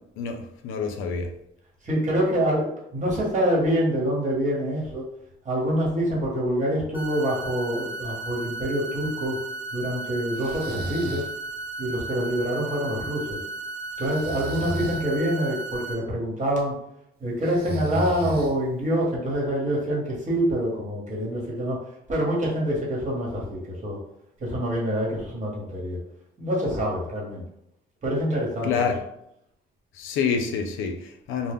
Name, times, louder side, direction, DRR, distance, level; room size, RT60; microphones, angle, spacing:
voice 1, 0.2-1.3 28.6-29.0 29.9-31.5, left 6 dB, 85° left, 5 dB, 0.5 m, -27 dB
voice 2, 1.8-5.0 5.4-9.4 9.7-11.2 11.8-13.4 14.0-16.7 17.2-21.8 22.1-24.0 24.4-26.0 26.4-27.4 28.0-28.9, equal, 40° right, -4 dB, 1.1 m, -26 dB
sound 1, 6.9-15.9, right 2 dB, 10° right, 0.7 m, -35 dB
Breathing, 10.4-11.3 14.0-15.0 17.4-18.8, right 1 dB, 55° right, 0.5 m, -33 dB
2.2 x 2.0 x 3.4 m, 0.77 s
cardioid pair, 90°, 20 cm